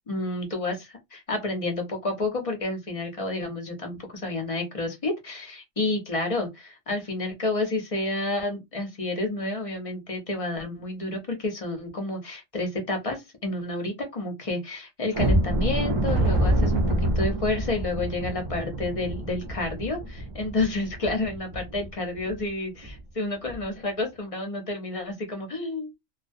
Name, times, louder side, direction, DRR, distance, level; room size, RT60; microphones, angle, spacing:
voice 1, 0.1-25.9, left 2 dB, 45° left, 0.4 m, -30 dB
sound 1, 15.1-21.9 22.2-22.4 22.8-23.0 23.4-23.6, right 1 dB, 45° right, 0.4 m, -26 dB
2.3 x 2.1 x 2.5 m
omnidirectional pair, 1.4 m